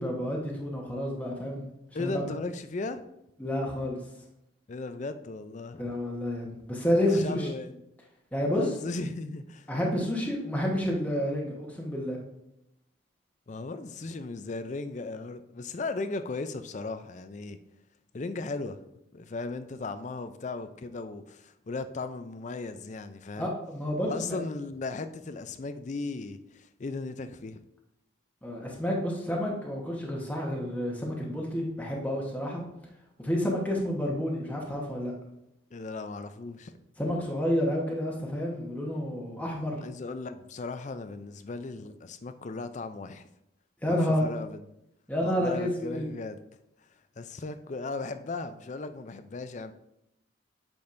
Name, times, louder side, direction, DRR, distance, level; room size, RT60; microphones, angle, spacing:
voice 1, 0.0-1.7 2.0-2.2 3.4-4.0 5.8-7.5 8.3-8.7 9.7-12.2 23.4-24.4 28.4-32.6 33.2-35.1 37.0-39.9 43.8-44.3 45.1-46.1, equal, 10° left, 1.1 m, -29 dB
voice 2, 1.9-3.0 4.7-5.8 7.1-7.8 8.5-9.7 13.5-17.6 18.1-18.8 19.1-23.5 24.0-27.6 35.7-36.8 39.8-43.3 43.9-44.6 45.2-46.4 47.2-49.7, left 3 dB, 35° left, 0.4 m, -36 dB
8.6 x 6.1 x 2.6 m
head